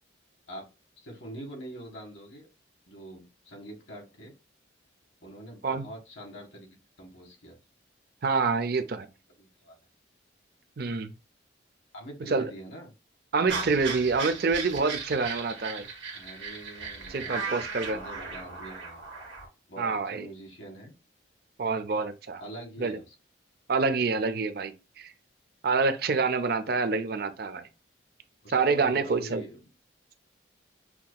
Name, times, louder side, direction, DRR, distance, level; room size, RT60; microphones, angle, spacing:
voice 1, 1.0-2.5 2.9-4.3 5.2-7.5 9.4-9.8 11.9-12.9 13.3-13.7 16.1-17.6 17.9-19.0 19.7-20.9 22.4-23.1 28.4-29.6, right 1 dB, 70° left, 1.6 m, -44 dB
voice 2, 8.2-9.1 10.8-11.1 12.3-12.4 13.3-15.9 17.1-18.0 19.8-20.3 21.6-22.4 22.8-23.0 23.7-25.1 25.6-27.6 28.5-29.4, right 4 dB, 50° right, 0.5 m, -27 dB
sound 1, 13.5-19.5, right 4 dB, 75° right, 1.6 m, -37 dB
5.8 x 2.7 x 2.2 m
head